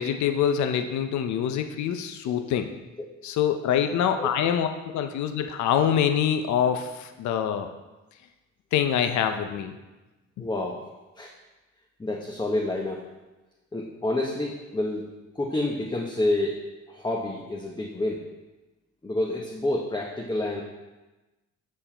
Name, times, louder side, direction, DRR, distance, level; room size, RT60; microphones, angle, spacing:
voice 1, 0.0-2.7 3.2-7.7 8.7-9.7, left 9 dB, 70° left, 7 dB, 0.6 m, -25 dB
voice 2, 10.4-10.8 11.2-11.3 12.0-13.0 13.7-15.0 15.3-16.6 16.9-18.3 19.0-20.6, left 1 dB, 15° left, -1 dB, 0.8 m, -28 dB
7.4 x 4.4 x 4.4 m, 1.1 s
cardioid pair, 90°, 30 cm